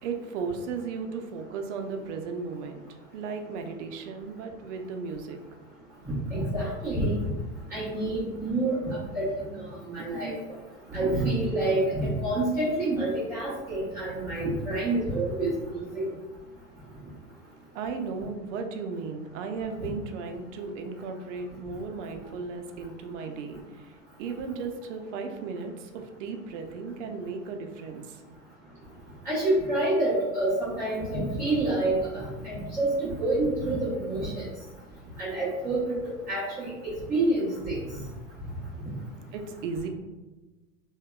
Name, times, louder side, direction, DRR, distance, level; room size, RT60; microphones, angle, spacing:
voice 1, 0.0-2.8 3.1-5.4 10.0-10.4 10.9-11.0 17.7-28.2 39.3-39.9, right 4 dB, 65° right, 5 dB, 0.5 m, -35 dB
voice 2, 6.1-7.2 7.7-8.8 9.1-10.3 10.9-16.1 29.2-34.4 35.2-36.7 37.1-37.8, right 2 dB, 10° right, -11 dB, 0.3 m, -28 dB
2.7 x 2.1 x 2.2 m, 1.2 s
supercardioid pair, 130°, 40 cm